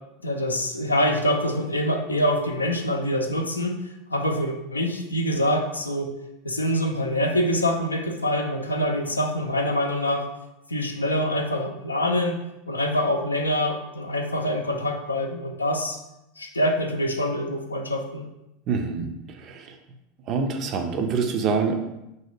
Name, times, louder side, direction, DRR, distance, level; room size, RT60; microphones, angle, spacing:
voice 1, 0.2-3.8 4.1-6.1 6.4-10.3 10.7-12.4 12.7-16.0 16.4-18.2, left 1 dB, 85° left, 4 dB, 0.3 m, -25 dB
voice 2, 18.7-19.8 20.3-21.8, right 5 dB, 40° right, 6 dB, 0.4 m, -26 dB
3.0 x 2.7 x 2.7 m, 0.91 s
figure-of-eight pair, 80°, 0 cm